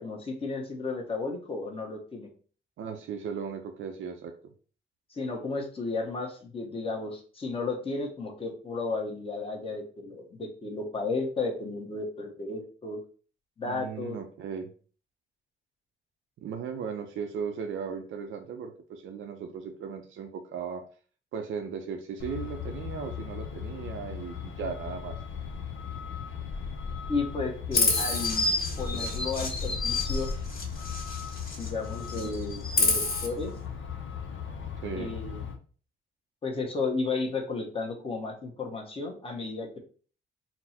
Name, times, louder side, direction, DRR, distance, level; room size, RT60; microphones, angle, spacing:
voice 1, 0.0-2.3 5.1-13.0 13.6-14.2 27.1-28.5 28.8-30.3 31.6-33.5 34.9-35.4 36.4-39.8, left 3 dB, 30° left, 1 dB, 1.0 m, -33 dB
voice 2, 2.8-4.5 13.7-14.7 16.4-20.8 21.3-25.2 34.8-35.2, right 6 dB, 80° right, 5 dB, 0.6 m, -37 dB
Truck, 22.2-35.6, left 6 dB, 75° left, 0.7 m, -37 dB
Chirp tweet, 27.7-31.7 32.0-33.3, left 3 dB, 50° left, 1.5 m, -29 dB
4.2 x 2.1 x 4.2 m, 0.40 s
cardioid pair, 135°, 20 cm